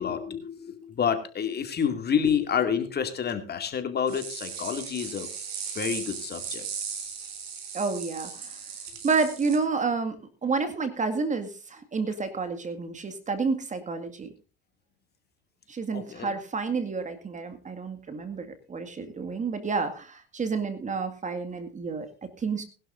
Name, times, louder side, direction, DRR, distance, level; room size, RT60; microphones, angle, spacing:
voice 1, 0.0-5.3 5.7-6.7 15.9-16.3, left 7 dB, 30° left, 7 dB, 2.4 m, -28 dB
sound 1, 4.1-9.6, right 6 dB, 90° right, 4.1 m, -37 dB
voice 2, 7.7-8.6 9.0-10.2 10.4-14.3 15.7-22.6, right 4 dB, 25° right, 8 dB, 2.0 m, -30 dB
20.5 x 12.0 x 2.6 m, 0.35 s
hypercardioid pair, 95°, 30 cm